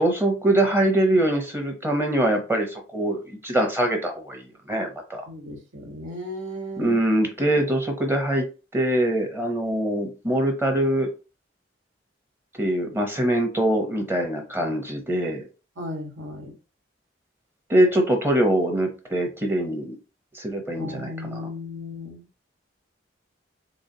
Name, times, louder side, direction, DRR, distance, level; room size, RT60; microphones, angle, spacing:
voice 1, 0.0-5.2 6.8-8.5 8.7-11.1 12.6-15.5 17.7-20.0 20.3-21.5, right 1 dB, 10° right, 0.7 m, -23 dB
voice 2, 5.3-7.0 15.8-16.5 20.7-22.3, left 1 dB, 85° right, 1.3 m, -35 dB
3.9 x 3.5 x 2.7 m
head